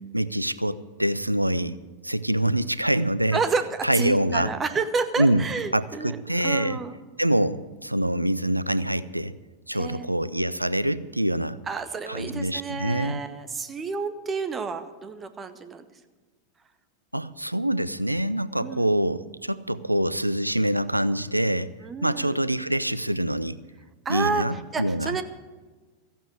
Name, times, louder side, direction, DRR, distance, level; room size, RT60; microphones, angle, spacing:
voice 1, 0.1-1.8 2.0-3.4 3.8-4.5 5.2-5.4 5.7-6.8 7.2-9.3 9.7-11.6 12.1-13.2 17.1-21.7 22.0-23.6 24.1-25.2, right 1 dB, 85° right, 16 dB, 0.5 m, -25 dB
voice 2, 3.3-7.0 9.7-10.1 11.7-15.8 18.6-19.0 21.8-22.4 24.0-25.2, right 4 dB, 20° right, 10 dB, 1.1 m, -30 dB
14.5 x 9.1 x 8.0 m, 1.3 s
figure-of-eight pair, 90°, 0 cm